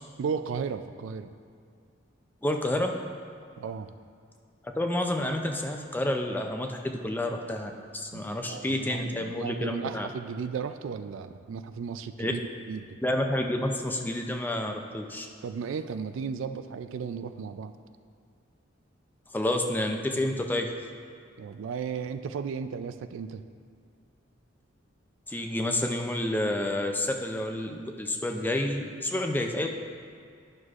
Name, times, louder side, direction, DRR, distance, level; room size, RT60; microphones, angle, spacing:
voice 1, 0.2-1.3 3.6-3.9 8.1-12.4 12.7-13.0 15.4-17.7 21.4-23.4, right 6 dB, 75° right, 10 dB, 0.3 m, -35 dB
voice 2, 2.4-3.0 4.8-10.1 12.2-12.3 13.0-15.3 19.3-20.7 25.3-29.7, left 1 dB, 10° left, 3 dB, 0.4 m, -29 dB
11.0 x 6.3 x 2.4 m, 2.3 s
head